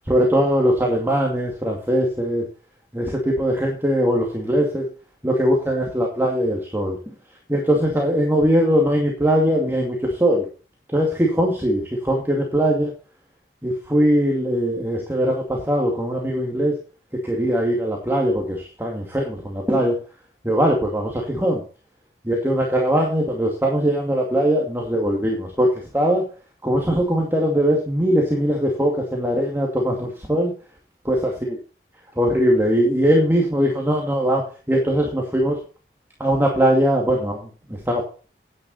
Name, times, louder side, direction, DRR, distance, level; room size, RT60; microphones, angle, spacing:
voice 1, 0.1-2.5 2.9-4.9 5.2-7.0 7.5-10.5 10.9-12.9 13.6-16.8 17.2-20.0 20.4-21.6 22.2-26.2 26.6-30.5 31.1-31.2 31.5-31.6 32.2-35.6 36.2-38.0, equal, 15° right, 0 dB, 2.3 m, -20 dB
10.5 x 9.8 x 4.2 m, 0.36 s
head